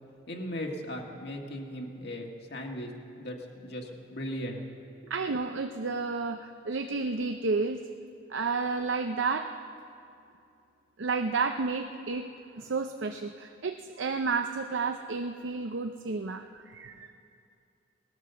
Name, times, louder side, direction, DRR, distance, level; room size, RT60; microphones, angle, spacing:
voice 1, 0.3-2.9 3.2-4.6, equal, 55° left, 1 dB, 1.7 m, -37 dB
voice 2, 5.1-7.8 8.3-9.5 11.0-12.3 12.6-17.1, right 4 dB, 75° right, 7 dB, 0.6 m, -31 dB
19.0 x 11.0 x 6.8 m, 2.6 s
head